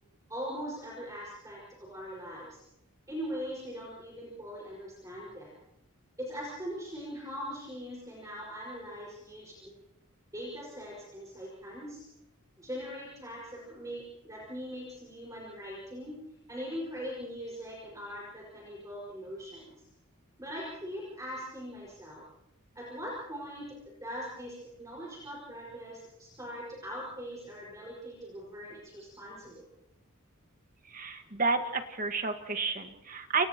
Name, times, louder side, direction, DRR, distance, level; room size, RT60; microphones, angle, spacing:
voice 1, 0.3-2.6 3.1-5.5 6.2-9.7 10.3-12.0 12.6-16.2 16.5-19.8 20.4-22.2 22.7-23.7 24.0-29.7, equal, 15° right, -4 dB, 5.5 m, -41 dB
voice 2, 30.8-33.5, right 4 dB, 40° right, 6 dB, 1.7 m, -31 dB
29.5 x 29.0 x 3.0 m, 0.88 s
head